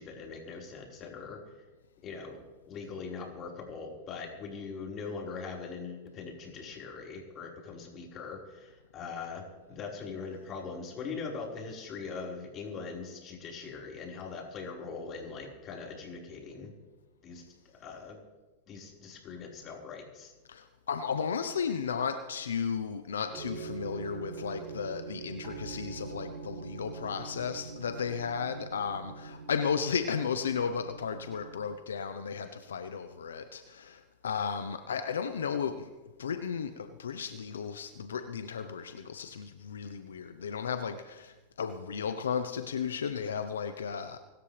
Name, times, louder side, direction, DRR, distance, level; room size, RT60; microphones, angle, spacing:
voice 1, 0.0-1.4 2.0-16.7 17.2-17.4 17.8-18.2 18.7-20.3, left 4 dB, 35° left, -1 dB, 4.8 m, -41 dB
voice 2, 20.5-35.9 36.2-44.2, left 6 dB, 90° left, 9 dB, 0.9 m, -34 dB
sound 1, 23.3-31.6, right 5 dB, 35° right, 5.6 m, -44 dB
25.0 x 13.0 x 3.4 m, 1.2 s
hypercardioid pair, 110°, 0 cm